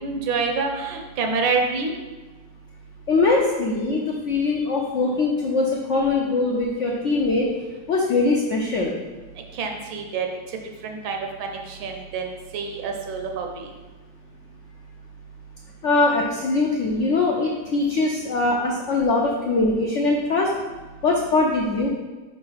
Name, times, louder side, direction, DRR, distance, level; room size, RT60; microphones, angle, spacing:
voice 1, 0.0-1.9 9.5-10.3 10.8-12.2 12.5-13.7, right 4 dB, 75° right, 3 dB, 1.6 m, -27 dB
voice 2, 3.1-7.5 7.9-9.0 15.8-20.5 21.0-21.9, left 3 dB, 80° left, -1 dB, 0.6 m, -22 dB
5.2 x 3.9 x 5.6 m, 1.2 s
omnidirectional pair, 2.2 m